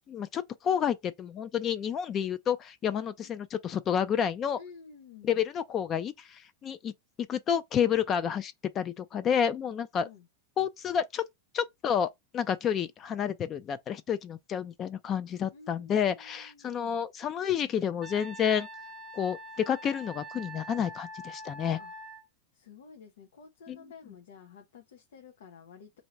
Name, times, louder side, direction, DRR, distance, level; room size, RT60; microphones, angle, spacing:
voice 1, 0.1-4.6 5.2-6.9 7.3-10.1 10.6-11.2 11.5-12.1 12.3-18.7 19.1-19.4 19.7-21.8 23.7-23.8, left 8 dB, 25° left, 0.3 m, -30 dB
voice 2, 4.5-5.4 10.0-10.3 15.5-17.0 21.8-21.9 22.5-26.0, left 6 dB, 90° left, 0.8 m, -52 dB
Wind instrument woodwind instrument, 18.0-22.2, right 1 dB, 10° left, 0.8 m, -44 dB
2.9 x 2.7 x 4.4 m
supercardioid pair, 155°, 0 cm